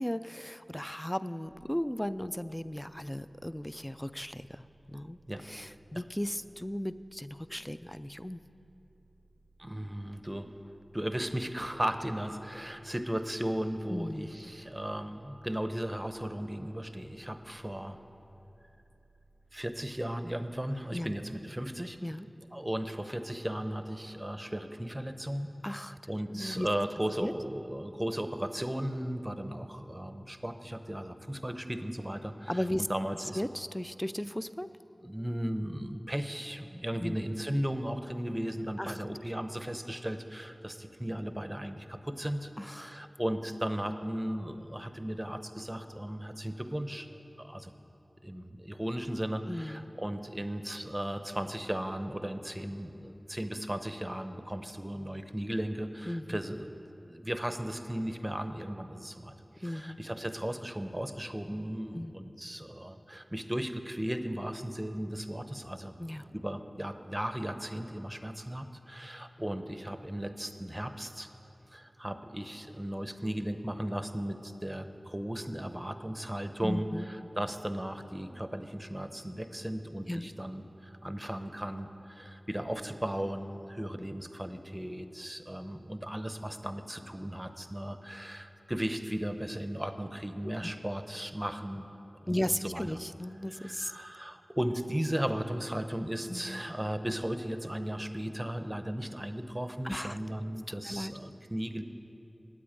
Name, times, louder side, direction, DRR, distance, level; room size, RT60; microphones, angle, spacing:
voice 1, 0.0-5.2 5.5-8.4 13.9-14.4 20.9-21.1 22.0-22.3 25.6-26.0 26.3-26.7 27.2-27.3 32.5-32.8 33.3-34.7 37.0-37.2 38.8-38.9 42.6-43.0 49.5-49.9 56.1-56.4 59.6-60.0 61.9-62.1 66.0-66.3 76.6-77.1 80.1-80.3 90.6-90.7 92.3-93.9 96.3-96.6 99.8-100.2 100.9-101.1, left 1 dB, 10° left, 14 dB, 0.3 m, -36 dB
sound 1, 1.4-21.2, right 2 dB, 80° left, 3.3 m, -64 dB
voice 2, 9.6-10.5 10.9-18.0 19.5-22.0 22.5-25.5 26.1-33.4 35.0-47.1 47.4-47.7 48.2-56.7 57.0-66.0 66.3-71.3 71.7-91.9 92.2-93.0 93.5-101.8, right 1 dB, 15° right, 9 dB, 0.7 m, -36 dB
9.6 x 8.5 x 8.8 m, 2.9 s
wide cardioid pair, 45°, 0 cm